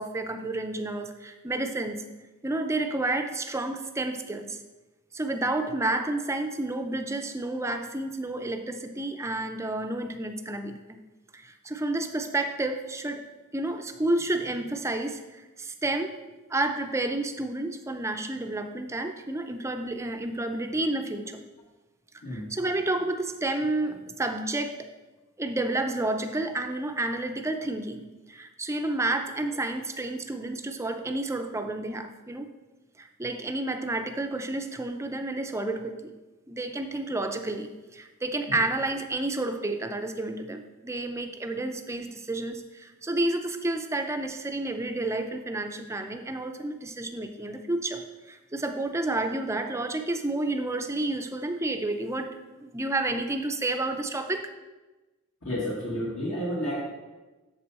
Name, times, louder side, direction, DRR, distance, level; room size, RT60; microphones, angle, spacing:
voice 1, 0.0-2.0 2.4-4.6 5.1-11.0 11.3-13.3 13.5-16.1 16.5-21.4 22.3-24.8 25.4-32.5 33.0-36.2 36.5-54.5, right 2 dB, 15° right, 6 dB, 0.5 m, -30 dB
voice 2, 22.2-22.5 38.5-38.6 55.4-56.9, equal, 65° left, -5 dB, 1.7 m, -31 dB
7.7 x 6.8 x 4.3 m, 1.2 s
head